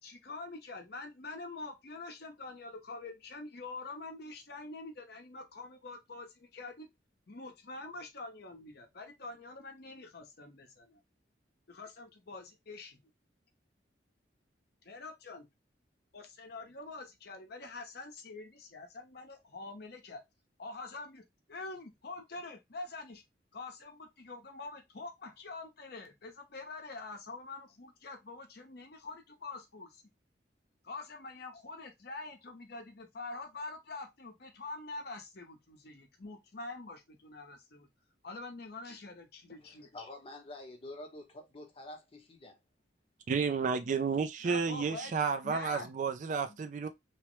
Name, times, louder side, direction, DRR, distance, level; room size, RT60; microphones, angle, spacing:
voice 1, 0.0-6.9 7.3-11.0 11.7-13.0 14.8-15.5 16.1-20.2 20.6-21.2 21.5-23.2 23.5-30.0 30.8-37.9 38.2-39.9 44.4-45.1 45.4-46.0 46.5-46.6, left 3 dB, 60° left, 0.8 m, -45 dB
voice 2, 39.6-42.6, left 2 dB, 30° left, 0.9 m, -48 dB
voice 3, 43.3-46.9, right 5 dB, 45° right, 0.3 m, -31 dB
3.0 x 2.1 x 3.0 m
head